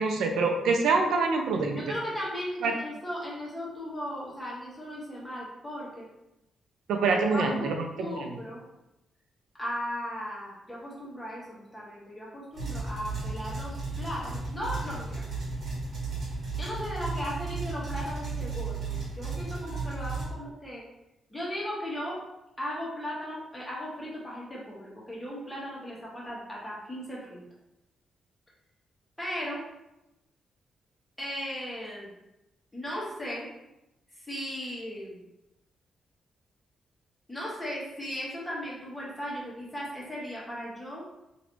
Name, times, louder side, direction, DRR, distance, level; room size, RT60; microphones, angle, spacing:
voice 1, 0.0-1.8 2.6-2.7 6.9-8.3, right 4 dB, 85° right, 3 dB, 0.4 m, -25 dB
voice 2, 1.7-6.1 7.3-7.7 8.0-8.6 9.6-15.2 16.6-20.8 21.3-22.2 22.6-27.4 29.2-29.6 31.2-32.1 32.7-33.5 34.2-35.2 37.3-41.0, equal, 10° left, -6 dB, 1.3 m, -37 dB
sound 1, 12.5-20.3, right 4 dB, 55° right, 1.3 m, -34 dB
3.1 x 2.6 x 3.0 m, 0.91 s
cardioid pair, 85°, 0 cm